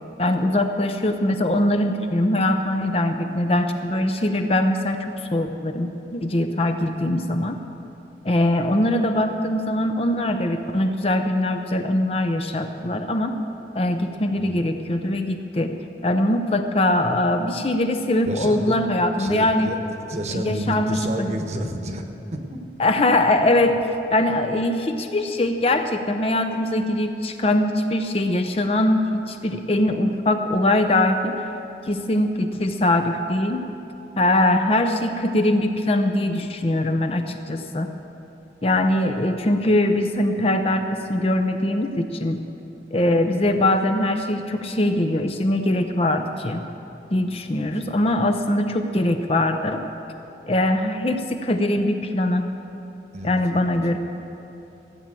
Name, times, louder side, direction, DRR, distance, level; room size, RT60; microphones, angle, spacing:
voice 1, 0.2-7.6 8.2-13.4 13.7-15.7 16.0-19.7 20.3-21.4 22.8-23.8 24.1-31.4 31.9-33.7 34.2-37.9 38.6-42.4 42.9-46.6 47.1-49.8 50.5-52.5 53.2-54.0, left 1 dB, 35° left, 6 dB, 0.6 m, -22 dB
voice 2, 18.3-18.8 19.2-19.8 20.1-22.0 22.3-22.6 38.7-38.8 43.4-43.5 47.5-47.7 53.1-53.8, right 1 dB, 40° right, 4 dB, 1.2 m, -30 dB
15.5 x 8.6 x 7.6 m, 2.9 s
head